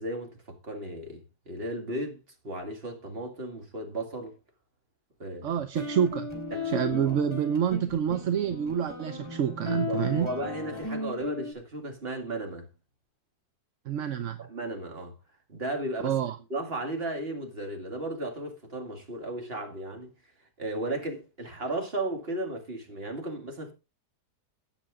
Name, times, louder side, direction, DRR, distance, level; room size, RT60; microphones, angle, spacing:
voice 1, 0.0-4.4 5.2-5.6 6.5-7.2 9.9-12.7 14.4-15.2 15.5-16.2 16.5-20.1 20.6-23.7, right 1 dB, 35° right, 2.5 m, -35 dB
voice 2, 5.4-6.3 6.7-10.3 13.9-14.4 16.0-16.4, right 8 dB, 55° right, 1.0 m, -27 dB
sound 1, 5.7-11.5, left 4 dB, 15° left, 3.5 m, -36 dB
13.5 x 9.0 x 3.6 m
omnidirectional pair, 1.7 m